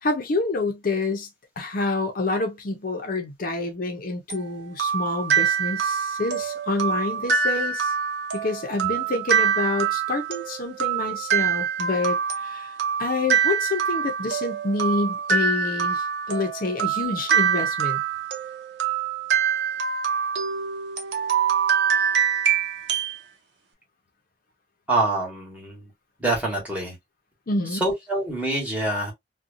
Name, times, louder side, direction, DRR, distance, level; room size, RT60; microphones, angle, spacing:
voice 1, 0.0-1.3 1.6-7.9 8.3-12.7 13.0-18.0 27.5-27.8, left 2 dB, 55° left, 0.6 m, -27 dB
sound 1, 4.3-23.2, right 7 dB, 90° right, 0.7 m, -25 dB
voice 2, 24.9-25.9 26.2-27.0 27.7-29.1, right 2 dB, 10° right, 1.3 m, -25 dB
2.7 x 2.2 x 2.5 m
head